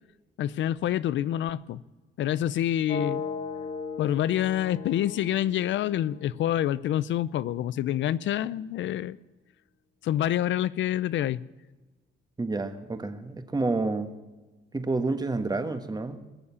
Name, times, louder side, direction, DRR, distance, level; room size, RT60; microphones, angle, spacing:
voice 1, 0.4-1.8 2.2-3.2 4.0-9.2 10.0-11.4, left 12 dB, 70° left, 0.5 m, -27 dB
sound 1, 2.9-6.8, left 5 dB, 45° left, 1.8 m, -37 dB
voice 2, 12.4-14.1 14.7-16.2, right 3 dB, 20° right, 1.4 m, -29 dB
20.5 x 7.1 x 7.0 m
cardioid pair, 90°, 20 cm